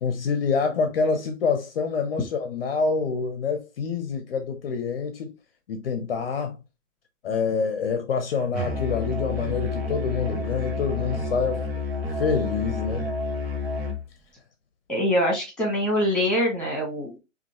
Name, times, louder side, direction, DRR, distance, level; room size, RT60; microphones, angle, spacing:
voice 1, 0.0-5.3 5.7-6.6 7.2-11.7 12.2-13.1, left 5 dB, 50° left, 0.7 m, -26 dB
Musical instrument, 8.5-14.0, left 3 dB, 50° right, 1.3 m, -29 dB
voice 2, 14.9-17.2, equal, ahead, 1.8 m, -24 dB
5.1 x 2.7 x 2.9 m
figure-of-eight pair, 120°, 38 cm